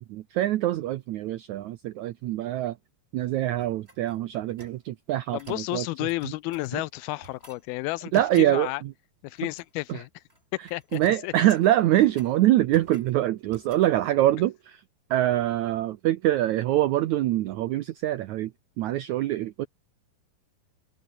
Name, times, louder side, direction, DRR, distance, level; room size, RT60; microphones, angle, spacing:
voice 1, 0.0-2.8 3.1-5.8 6.7-6.8 8.1-8.7 10.9-14.8 15.1-18.5 18.8-19.7, right 14 dB, 85° right, 1.6 m, -24 dB
sound 1, 3.6-4.8 5.4-5.7 6.1-6.7 7.2-7.7 8.1-8.5 9.3-9.9 10.2-10.4 10.7-12.4 12.7-13.2 13.5-13.9, right 1 dB, 15° right, 7.9 m, -52 dB
voice 2, 5.3-8.8 9.2-10.2 10.5-11.3, left 20 dB, 85° left, 2.5 m, -32 dB
omnidirectional pair, 4.4 m